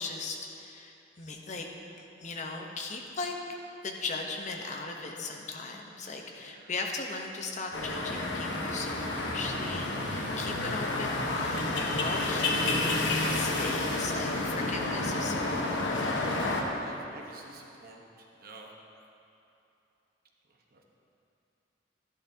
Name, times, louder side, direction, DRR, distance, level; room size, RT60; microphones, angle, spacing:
voice 1, 0.0-1.7 2.2-3.3 3.8-16.2, left 3 dB, 40° left, 1 dB, 0.9 m, -38 dB
voice 2, 6.4-6.7 10.4-10.7 16.8-18.7 20.7-20.8, right 2 dB, 55° right, 0 dB, 1.1 m, -50 dB
sound 1, 7.7-16.6, left 2 dB, 75° left, 1.0 m, -30 dB
11.5 x 11.0 x 2.8 m, 2.8 s
head